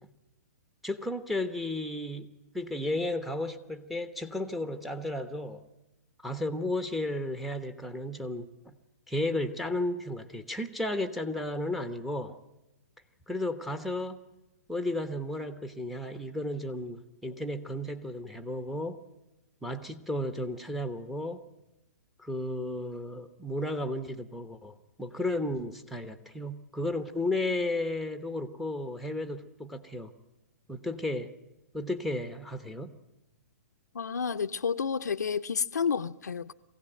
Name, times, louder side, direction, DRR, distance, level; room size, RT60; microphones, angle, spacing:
voice 1, 0.8-5.6 6.2-8.5 9.1-12.4 13.3-14.2 14.7-19.0 19.6-21.4 22.2-30.1 30.7-31.3 31.7-33.0, left 1 dB, ahead, 1.1 m, -33 dB
voice 2, 33.9-36.5, left 6 dB, 85° left, 0.7 m, -30 dB
22.5 x 16.5 x 9.1 m
hypercardioid pair, 130°, 9 cm